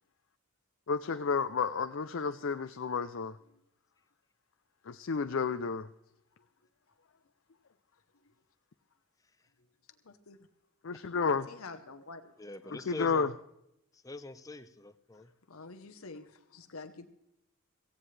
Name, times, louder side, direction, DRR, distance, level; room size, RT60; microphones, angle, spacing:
voice 1, 0.9-3.3 4.9-5.9 10.8-11.5 12.9-13.3, left 5 dB, 60° left, 0.5 m, -31 dB
voice 2, 7.9-8.3 10.0-10.4 11.5-12.3 12.6-12.9 15.1-17.1, left 3 dB, 75° left, 0.9 m, -49 dB
voice 3, 12.4-13.4 13.9-15.3, left 2 dB, 15° left, 0.6 m, -44 dB
17.5 x 16.0 x 3.3 m
head